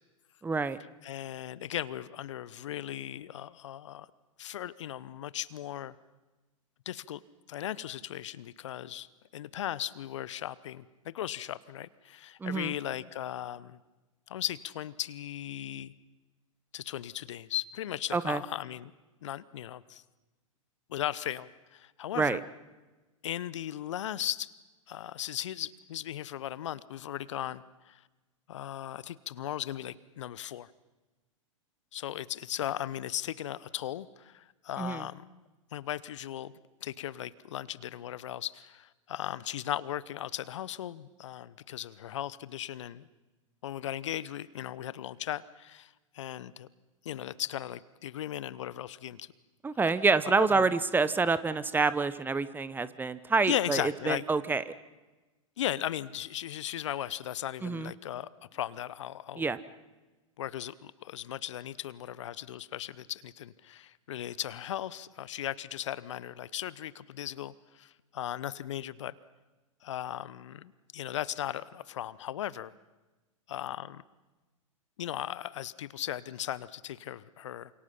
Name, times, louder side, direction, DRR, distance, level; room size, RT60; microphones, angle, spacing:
voice 1, 0.4-0.8 12.4-12.7 18.1-18.4 22.2-22.4 34.8-35.1 49.6-54.6 57.6-57.9 59.4-59.6, right 4 dB, 10° right, 15 dB, 1.1 m, -27 dB
voice 2, 1.0-4.1 4.4-5.9 6.9-7.2 7.5-9.1 9.3-13.8 14.3-15.9 16.7-18.9 19.2-20.0 20.9-22.4 23.2-24.5 24.9-28.0 28.5-30.7 31.9-35.3 35.7-36.5 36.8-43.1 43.6-46.7 47.0-49.3 50.2-50.7 53.5-54.2 55.6-59.5 60.4-69.1 69.8-72.7 73.5-74.0 75.0-77.7, left 11 dB, 60° left, 19 dB, 1.0 m, -37 dB
29.0 x 27.0 x 5.7 m, 1.2 s
figure-of-eight pair, 100°, 17 cm